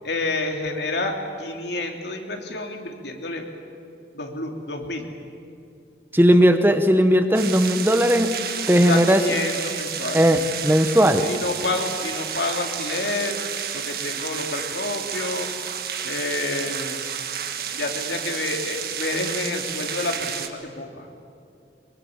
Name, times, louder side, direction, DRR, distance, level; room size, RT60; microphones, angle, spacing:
voice 1, 0.0-3.5 4.1-5.1 8.8-10.6 11.2-13.4 13.7-15.5 16.0-17.0 17.7-21.1, left 2 dB, 80° left, 3 dB, 3.0 m, -29 dB
voice 2, 6.1-8.4 8.7-9.2 10.1-11.3, equal, 10° right, 8 dB, 1.0 m, -17 dB
sound 1, 7.3-20.5, right 8 dB, 55° right, 1.6 m, -31 dB
23.5 x 23.0 x 8.6 m, 2.6 s
head